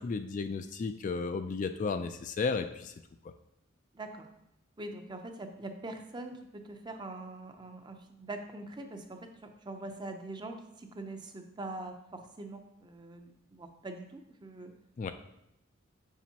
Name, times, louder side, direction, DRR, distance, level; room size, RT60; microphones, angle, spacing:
voice 1, 0.0-2.9 15.0-15.1, left 4 dB, 40° left, 8 dB, 0.3 m, -33 dB
voice 2, 3.9-4.3 4.8-14.7, right 2 dB, 20° right, 5 dB, 0.6 m, -43 dB
7.2 x 6.1 x 2.9 m, 0.83 s
head